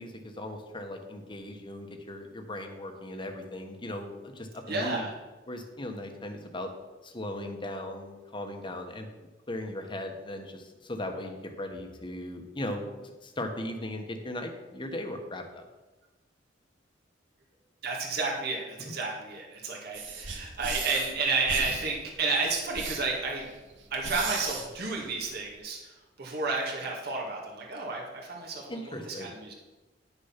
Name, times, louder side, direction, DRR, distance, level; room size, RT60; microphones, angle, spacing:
voice 1, 0.0-5.1 5.5-6.7 7.0-9.1 9.5-15.7 18.8-18.9 28.7-29.3, left 1 dB, 25° left, 4 dB, 1.2 m, -38 dB
voice 2, 4.7-5.1 17.8-23.5 23.9-25.9 26.2-29.5, right 3 dB, 55° right, -2 dB, 2.0 m, -31 dB
sound 1, 19.9-25.5, right 4 dB, 85° right, 1.5 m, -38 dB
10.5 x 6.7 x 5.8 m, 1.2 s
head